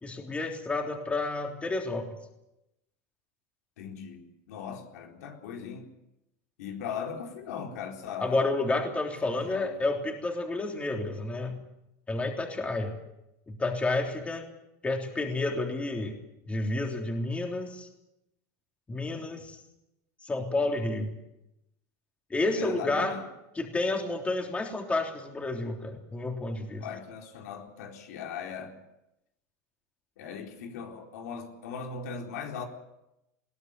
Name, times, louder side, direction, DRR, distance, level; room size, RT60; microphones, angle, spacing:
voice 1, 0.0-2.1 8.2-11.6 12.1-13.0 13.5-14.4 14.8-16.2 16.5-17.9 18.9-19.6 20.2-21.1 22.3-23.2 23.6-26.8, left 2 dB, 15° left, 3 dB, 3.4 m, -30 dB
voice 2, 3.8-5.8 6.6-8.5 9.2-9.8 22.6-23.2 26.8-28.7 30.2-32.7, left 6 dB, 85° left, 3 dB, 4.2 m, -39 dB
21.5 x 16.5 x 9.6 m, 0.89 s
supercardioid pair, 130°, 9 cm